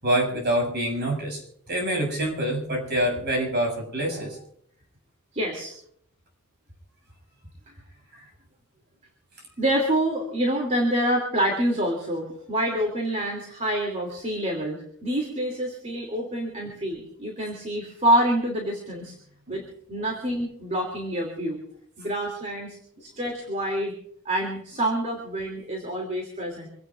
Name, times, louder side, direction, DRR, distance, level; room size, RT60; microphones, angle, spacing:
voice 1, 0.0-1.4 1.7-4.4 8.1-8.2 19.5-19.6, right 1 dB, 50° right, 1 dB, 7.4 m, -26 dB
voice 2, 5.3-5.7 9.6-19.1 19.5-19.6 19.9-21.6 22.0-23.9 24.2-26.7, right 1 dB, 30° right, 0 dB, 2.9 m, -27 dB
26.5 x 17.5 x 2.6 m, 0.66 s
head